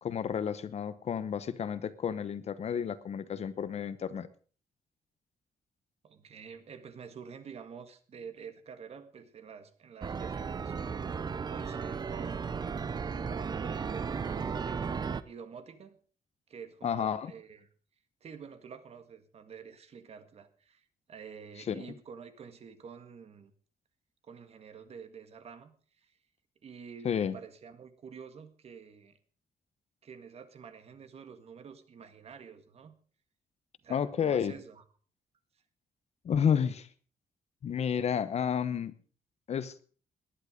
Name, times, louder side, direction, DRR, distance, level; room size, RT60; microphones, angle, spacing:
voice 1, 0.0-4.3 16.8-17.3 21.7-21.8 27.0-27.4 33.9-34.5 36.2-36.9 37.6-38.9 39.5-39.8, left 8 dB, 50° left, 15 dB, 1.0 m, -31 dB
voice 2, 6.0-15.0 15.2-16.0 16.5-17.7 18.2-23.5 24.2-25.7 26.0-26.2 26.6-29.2 30.0-32.9 33.8-34.8, right 6 dB, 45° right, 10 dB, 1.8 m, -48 dB
sound 1, 10.0-15.2, right 5 dB, 30° right, 0.7 m, -35 dB
19.0 x 11.0 x 5.2 m, 0.42 s
wide cardioid pair, 175°, 15 cm